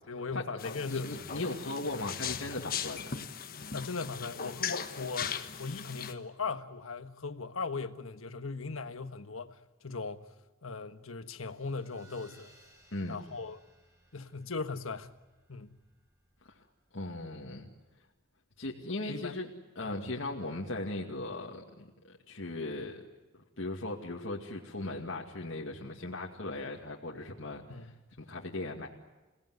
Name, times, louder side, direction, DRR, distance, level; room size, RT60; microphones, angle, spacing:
voice 1, 0.1-1.5 3.7-10.3 10.6-12.6 13.1-13.6 14.1-15.1 15.5-15.8 19.1-19.4 19.8-20.0 27.7-28.0, left 4 dB, 85° left, 1.4 m, -39 dB
sound 1, 0.6-6.1, left 7 dB, 45° left, 1.4 m, -38 dB
voice 2, 0.9-3.2 12.9-13.2 16.9-17.7 18.6-19.5 19.8-23.0 23.6-27.9 28.2-28.9, left 2 dB, 65° left, 2.3 m, -38 dB
sound 2, 11.2-18.2, right 1 dB, 15° right, 6.8 m, -64 dB
29.0 x 18.0 x 9.5 m
head